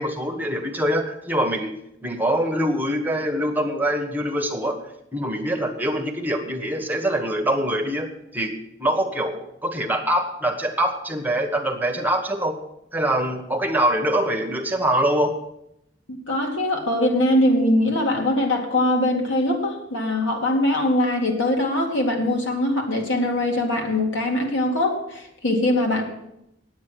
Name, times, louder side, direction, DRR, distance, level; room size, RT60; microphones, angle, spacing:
voice 1, 0.0-1.7 2.0-4.8 5.1-8.1 8.3-8.5 8.8-12.6 12.9-15.4, right 1 dB, 10° right, 4 dB, 1.2 m, -24 dB
voice 2, 16.1-26.0, left 1 dB, 90° left, 2 dB, 2.2 m, -22 dB
9.6 x 8.7 x 7.7 m, 0.81 s
head